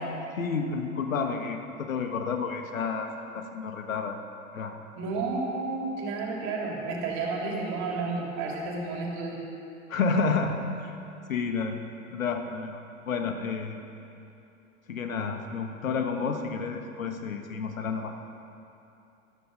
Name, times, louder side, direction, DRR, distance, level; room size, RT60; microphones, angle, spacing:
voice 1, 0.3-3.1 3.3-4.2 4.5-4.7 9.9-10.9 11.3-11.8 12.1-13.8 14.9-18.1, left 5 dB, 75° left, 5 dB, 1.4 m, -30 dB
voice 2, 5.0-9.4, right 3 dB, 45° right, -1 dB, 3.3 m, -31 dB
14.0 x 12.5 x 5.4 m, 2.8 s
figure-of-eight pair, 90°, 40 cm